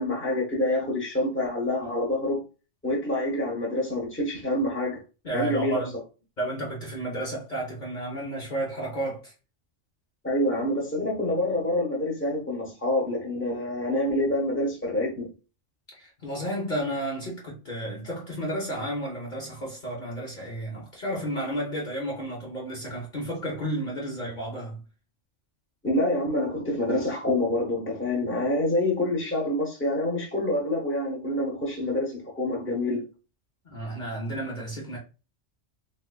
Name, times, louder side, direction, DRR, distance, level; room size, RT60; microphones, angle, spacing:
voice 1, 0.0-2.4 2.8-5.0 5.3-5.8 10.2-15.3 25.8-33.0, left 1 dB, 10° left, 1.1 m, -27 dB
voice 2, 5.2-5.9 6.4-9.3 15.9-24.8 33.6-35.0, right 1 dB, 45° left, 1.1 m, -32 dB
3.5 x 3.4 x 2.2 m
omnidirectional pair, 1.2 m